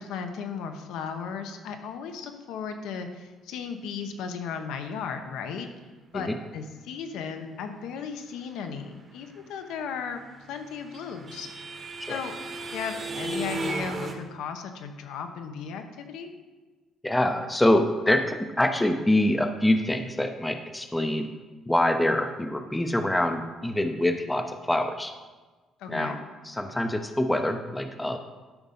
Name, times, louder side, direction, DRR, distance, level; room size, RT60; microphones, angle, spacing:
voice 1, 0.0-5.7 6.1-10.2 10.5-11.5 12.1-12.3 12.7-16.3 25.8-26.2, left 6 dB, 85° left, 6 dB, 1.0 m, -35 dB
sound 1, 10.3-14.1, right 2 dB, 25° right, 1.0 m, -34 dB
voice 2, 17.0-21.3 21.7-25.1 25.9-28.2, left 1 dB, 5° left, 7 dB, 0.5 m, -25 dB
12.0 x 5.2 x 5.5 m, 1.3 s
cardioid pair, 165°, 0 cm